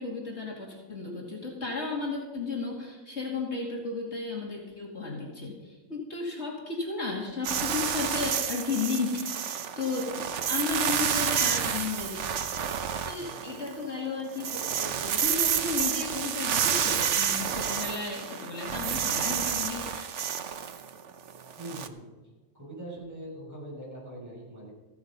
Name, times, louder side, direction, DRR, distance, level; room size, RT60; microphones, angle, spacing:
voice 1, 0.0-20.1, left 4 dB, 55° left, -2 dB, 2.6 m, -34 dB
sound 1, 7.4-13.9 14.2-21.9, right 8 dB, 65° right, 1.1 m, -29 dB
voice 2, 21.6-22.1 22.5-24.7, right 1 dB, 10° right, -5 dB, 6.1 m, -42 dB
15.0 x 12.0 x 5.3 m, 1.2 s
omnidirectional pair, 1.4 m